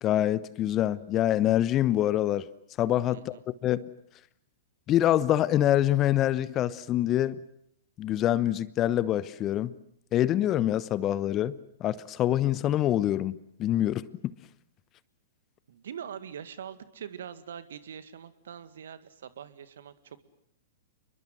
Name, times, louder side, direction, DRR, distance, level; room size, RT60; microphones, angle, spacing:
voice 1, 0.0-2.5 2.8-3.4 3.6-3.9 4.9-7.4 8.0-9.7 10.1-14.0, left 12 dB, 30° left, 1.0 m, -25 dB
voice 2, 15.7-20.2, right 8 dB, 65° right, 1.9 m, -43 dB
29.0 x 22.5 x 7.8 m
figure-of-eight pair, 105°, 0 cm